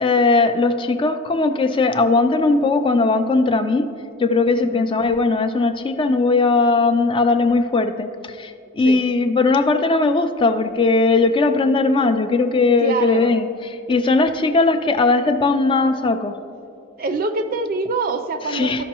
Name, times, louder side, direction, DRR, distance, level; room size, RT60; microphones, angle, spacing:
voice 1, 0.0-3.9 4.2-16.4 18.5-18.8, left 3 dB, 25° left, 8 dB, 0.3 m, -18 dB
voice 2, 4.5-4.9 8.8-9.0 12.8-13.4 17.0-18.8, right 3 dB, 45° right, 8 dB, 0.5 m, -25 dB
13.5 x 5.3 x 2.9 m, 2.5 s
head